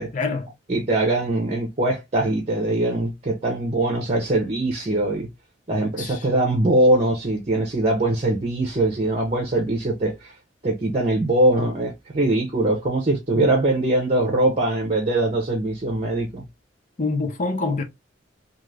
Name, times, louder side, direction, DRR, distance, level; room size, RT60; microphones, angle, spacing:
voice 1, 0.1-0.5 6.0-6.3 13.3-13.6 17.0-17.8, left 3 dB, 40° left, 0.6 m, -26 dB
voice 2, 0.7-5.3 5.7-10.3 10.6-16.4, right 1 dB, 35° right, 0.6 m, -22 dB
2.4 x 2.4 x 3.2 m
head